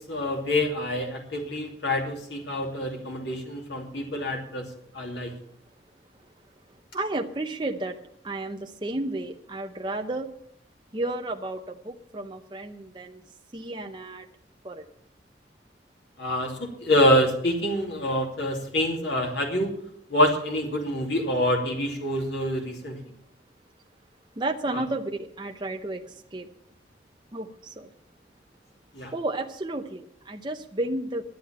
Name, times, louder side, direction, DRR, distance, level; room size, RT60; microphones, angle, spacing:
voice 1, 0.1-4.7 4.9-5.3 16.2-19.7 20.1-23.0 24.7-24.8 28.9-29.1, left 1 dB, 75° left, 2 dB, 2.7 m, -26 dB
voice 2, 6.9-8.0 8.2-10.3 10.9-13.2 13.5-14.3 14.6-14.8 24.4-26.0 26.3-26.5 27.3-27.9 29.1-31.2, right 2 dB, 25° right, 3 dB, 0.8 m, -32 dB
12.0 x 8.3 x 8.7 m, 0.73 s
head